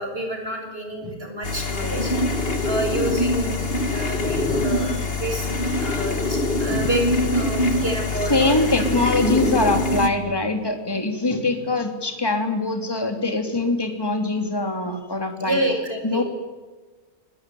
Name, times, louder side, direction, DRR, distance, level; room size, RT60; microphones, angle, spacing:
voice 1, 0.0-2.2 2.6-3.6 3.9-5.5 5.8-7.0 7.3-8.7 9.4-9.5 15.4-16.2, right 1 dB, 35° right, 3 dB, 6.6 m, -28 dB
sound 1, 1.4-10.1, left 2 dB, 40° left, 2.4 m, -24 dB
voice 2, 8.3-15.6 16.0-16.2, left 2 dB, 15° left, 5 dB, 3.2 m, -23 dB
26.5 x 23.0 x 9.4 m, 1.3 s
omnidirectional pair, 1.7 m